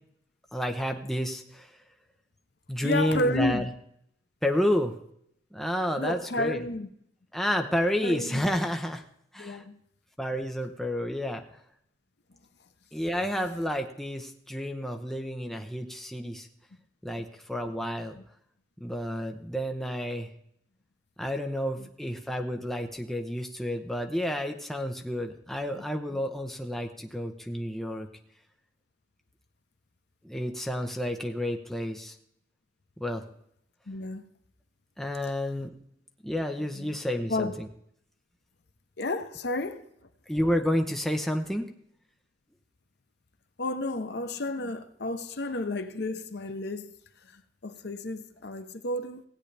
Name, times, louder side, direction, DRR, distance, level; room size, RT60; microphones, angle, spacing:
voice 1, 0.5-1.7 2.7-3.7 4.4-4.9 5.5-6.6 7.3-9.0 9.3-9.6 10.2-11.4 12.9-16.5 17.0-18.2 18.8-20.3 21.2-28.1 30.2-32.1 33.0-33.3 35.0-35.7 36.2-37.7 40.3-41.7, equal, ahead, 0.8 m, -30 dB
voice 2, 2.8-3.7 6.0-6.9 8.0-8.5 9.4-9.8 18.1-18.2 21.8-21.9 33.9-34.3 36.8-37.0 37.3-37.6 39.0-39.8 43.6-46.9 47.2-49.2, left 2 dB, 65° left, 0.8 m, -32 dB
16.5 x 9.0 x 3.4 m
head